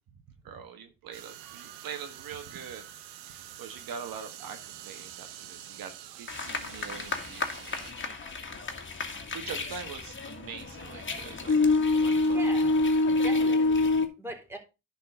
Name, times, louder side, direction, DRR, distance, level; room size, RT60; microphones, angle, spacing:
voice 1, 0.4-8.1 9.3-12.5 13.1-13.2, right 7 dB, 65° right, 1.4 m, -44 dB
sound 1, 1.1-7.9, right 11 dB, 80° right, 1.2 m, -46 dB
sound 2, 6.3-14.1, left 3 dB, 30° left, 2.0 m, -27 dB
voice 2, 12.2-12.7 13.1-13.9 14.2-14.6, right 1 dB, 5° right, 3.8 m, -41 dB
10.5 x 4.4 x 5.4 m
supercardioid pair, 60°, 38 cm